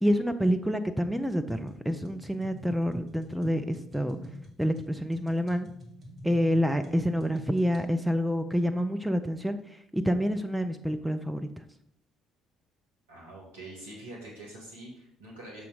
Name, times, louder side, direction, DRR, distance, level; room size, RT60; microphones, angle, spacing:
voice 1, 0.0-4.2 4.6-5.7 6.2-11.6, equal, 5° right, 7 dB, 0.5 m, -28 dB
sound 1, 1.5-7.8, equal, 45° right, 1.5 m, -47 dB
voice 2, 13.1-15.6, right 1 dB, 80° right, -3 dB, 1.5 m, -45 dB
6.8 x 3.9 x 4.9 m, 0.75 s
figure-of-eight pair, 50°, 0 cm